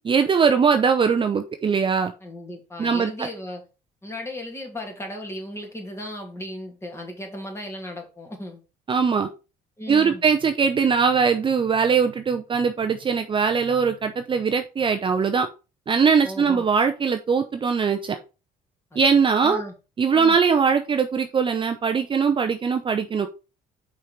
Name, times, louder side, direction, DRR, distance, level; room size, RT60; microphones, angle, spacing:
voice 1, 0.1-2.1 2.8-3.3 8.9-9.3 9.9-15.5 15.9-18.2 19.0-19.6 20.0-23.3, right 6 dB, 30° right, 6 dB, 0.7 m, -21 dB
voice 2, 2.2-3.6 4.0-8.6 9.8-10.2 16.2-16.7 18.9-19.1 19.4-19.7 20.1-20.4, left 1 dB, 15° left, 1 dB, 2.6 m, -36 dB
5.5 x 4.6 x 5.0 m, 0.31 s
cardioid pair, 110°, 17 cm